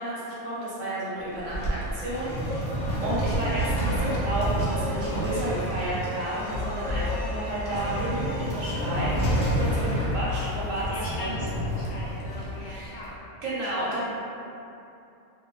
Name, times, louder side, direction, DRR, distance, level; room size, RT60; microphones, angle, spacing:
voice 1, 0.0-2.7 3.0-11.4 12.6-13.0 13.4-14.1, right 1 dB, 85° right, -8 dB, 1.2 m, -32 dB
sound 1, 1.2-13.1, right 1 dB, 65° left, 1.1 m, -30 dB
Air and a Door, 1.8-2.1 4.0-4.9 6.4-7.7 8.7-10.9 11.6-12.7, left 3 dB, 60° right, 0.6 m, -35 dB
sound 2, 1.9-10.6, equal, 25° left, 0.3 m, -37 dB
voice 2, 10.9-13.2, left 1 dB, 85° left, -6 dB, 1.1 m, -39 dB
3.0 x 2.1 x 2.7 m, 2.8 s
omnidirectional pair, 1.3 m